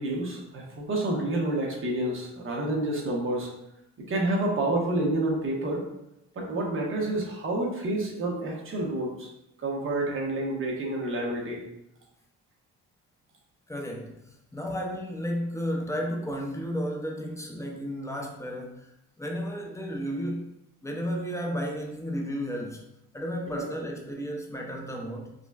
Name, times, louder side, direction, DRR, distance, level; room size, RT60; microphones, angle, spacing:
voice 1, 0.0-3.5 4.1-5.9 6.3-9.3 9.6-11.7 23.5-23.7, right 1 dB, 45° right, -1 dB, 1.0 m, -29 dB
voice 2, 13.7-18.9 19.2-20.5 20.8-22.8 23.1-25.3, equal, 10° left, 0 dB, 0.6 m, -33 dB
5.0 x 2.2 x 2.3 m, 0.84 s
cardioid pair, 90°, 30 cm